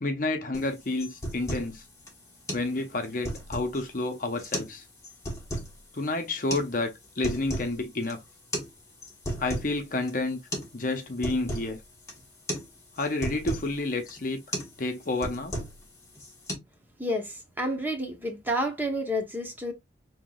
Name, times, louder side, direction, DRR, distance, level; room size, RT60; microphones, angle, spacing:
voice 1, 0.0-1.8 2.5-4.8 5.9-8.2 9.4-10.4 10.7-11.8 13.0-14.4 14.8-15.6, left 2 dB, 45° left, 0.8 m, -30 dB
sound 1, 0.5-0.7 1.0-1.7 2.1-2.2 2.5-2.7 3.0-3.8 4.4-4.8 5.0-5.7 6.5-6.7 7.0-7.7 8.0-8.1 8.5-8.7 9.0-9.7 10.1-10.2 10.5-10.7 11.0-11.7 12.1-12.2 12.5-12.7 13.0-13.7 14.1-14.2 14.5-14.7 15.0-15.8 16.1-16.5, equal, 15° left, 1.3 m, -34 dB
voice 2, 17.0-19.7, equal, 10° right, 0.9 m, -30 dB
5.7 x 2.9 x 2.3 m
head